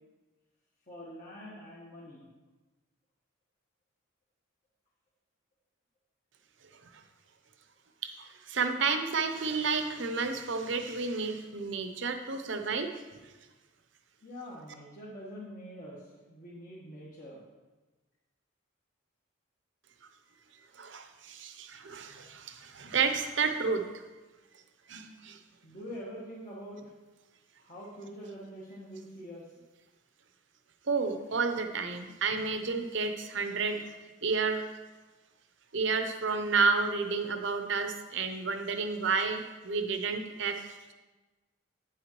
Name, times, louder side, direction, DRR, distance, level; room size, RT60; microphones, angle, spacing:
voice 1, 0.9-2.3 14.2-17.4 25.6-26.9 27.6-29.4, equal, 40° left, -7 dB, 1.2 m, -45 dB
voice 2, 8.0-12.9 20.8-23.9 24.9-25.4 30.9-34.0 34.2-34.6 35.7-40.9, right 4 dB, 60° right, 7 dB, 0.7 m, -31 dB
8.9 x 8.0 x 3.1 m, 1.2 s
head